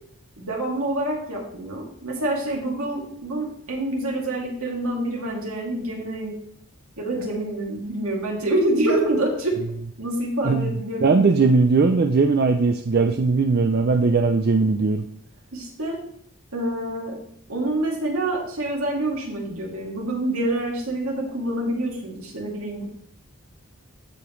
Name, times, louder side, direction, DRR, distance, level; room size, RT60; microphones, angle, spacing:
voice 1, 0.4-6.3 7.0-9.6 10.0-11.4 15.5-16.0 16.5-17.2 17.5-22.8, right 1 dB, 75° right, -2 dB, 2.5 m, -26 dB
voice 2, 11.0-15.1, right 4 dB, 45° right, 6 dB, 0.4 m, -19 dB
14.0 x 5.0 x 3.1 m, 0.66 s
head